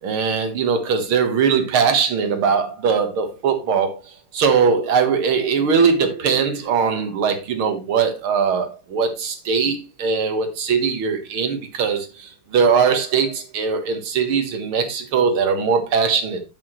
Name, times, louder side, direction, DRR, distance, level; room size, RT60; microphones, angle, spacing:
voice 1, 0.0-4.0 4.3-16.4, right 6 dB, 80° right, 2.2 m, -20 dB
8.4 x 8.0 x 3.1 m
omnidirectional pair, 2.3 m